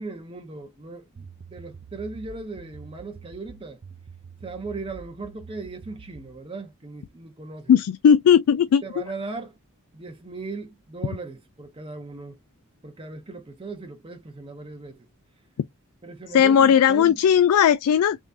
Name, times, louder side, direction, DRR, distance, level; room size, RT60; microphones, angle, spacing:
voice 1, 0.0-3.8 4.4-7.7 8.8-9.6 9.9-12.4 12.8-15.1 16.0-17.2, right 3 dB, 25° right, 0.7 m, -38 dB
sound 1, 1.2-6.4, right 5 dB, 60° right, 0.5 m, -46 dB
voice 2, 7.7-8.8 16.3-18.2, left 8 dB, 85° left, 0.3 m, -17 dB
3.6 x 3.0 x 2.6 m
head